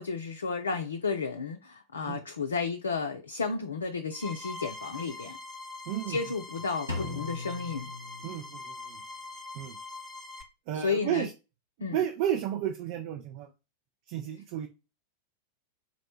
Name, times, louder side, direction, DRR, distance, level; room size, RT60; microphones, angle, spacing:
voice 1, 0.0-5.4 6.1-7.9 10.7-11.3 11.8-12.0, left 5 dB, 70° left, 0.4 m, -32 dB
sound 1, 4.1-10.4, left 3 dB, 5° left, 0.8 m, -43 dB
voice 2, 5.9-6.2 8.2-9.0 9.5-9.8 10.7-11.3 11.9-13.5 14.1-14.7, right 11 dB, 45° right, 0.4 m, -32 dB
Drum, 6.9-8.8, left 3 dB, 90° right, 0.9 m, -38 dB
4.0 x 2.1 x 4.3 m
figure-of-eight pair, 90°, 0 cm